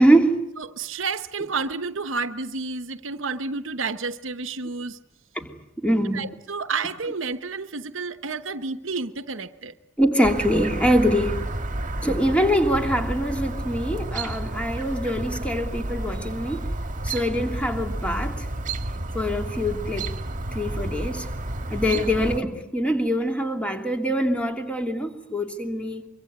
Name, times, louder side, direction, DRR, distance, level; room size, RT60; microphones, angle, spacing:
voice 1, 0.0-0.4 5.3-5.5 5.8-6.2 10.0-11.5 12.0-16.7 17.0-18.5 19.1-20.1 20.5-21.3 21.7-26.1, equal, 5° left, 2.9 m, -23 dB
voice 2, 0.6-5.0 6.1-9.7 21.9-22.1, right 4 dB, 65° right, 1.0 m, -30 dB
Chirp tweet, 10.2-22.4, right 1 dB, 40° right, 1.8 m, -31 dB
24.5 x 24.0 x 9.5 m
head